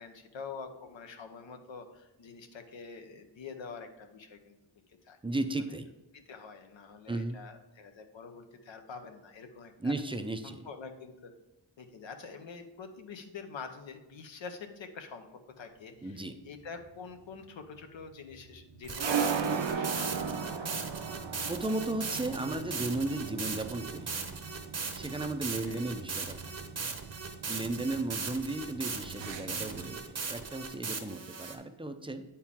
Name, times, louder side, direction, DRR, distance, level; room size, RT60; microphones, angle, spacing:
voice 1, 0.0-4.6 5.1-5.2 6.1-9.9 10.4-11.3 11.8-20.7 25.6-25.8, left 5 dB, 80° left, 6 dB, 0.9 m, -46 dB
voice 2, 5.2-5.9 7.1-7.4 9.8-10.6 16.0-16.3 21.5-24.1 24.9-26.5 27.5-32.2, right 2 dB, 10° right, 7 dB, 0.4 m, -35 dB
sound 1, 16.0-30.0, right 6 dB, 75° right, 0.8 m, -38 dB
sound 2, 18.8-31.6, right 4 dB, 35° right, 0.8 m, -38 dB
8.6 x 4.5 x 3.6 m, 1.0 s
wide cardioid pair, 100°, 44 cm